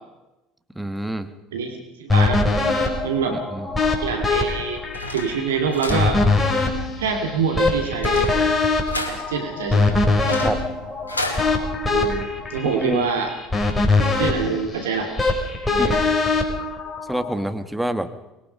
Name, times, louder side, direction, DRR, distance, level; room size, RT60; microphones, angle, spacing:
voice 1, 0.7-1.3 3.5-3.7 10.4-10.6 12.6-13.1 15.8-16.1 17.1-18.1, right 1 dB, 5° right, 9 dB, 1.7 m, -27 dB
voice 2, 1.5-2.4 3.0-3.4 4.0-4.8 5.1-6.2 7.0-8.3 9.1-10.0 11.9-13.3 14.0-15.1 15.7-15.9, right 5 dB, 75° right, 4 dB, 2.7 m, -25 dB
sound 1, 2.1-17.3, left 3 dB, 15° left, 5.3 m, -22 dB
sound 2, 4.4-11.4, left 2 dB, 85° left, 2.3 m, -33 dB
24.5 x 21.5 x 5.3 m, 0.97 s
figure-of-eight pair, 65°, 0 cm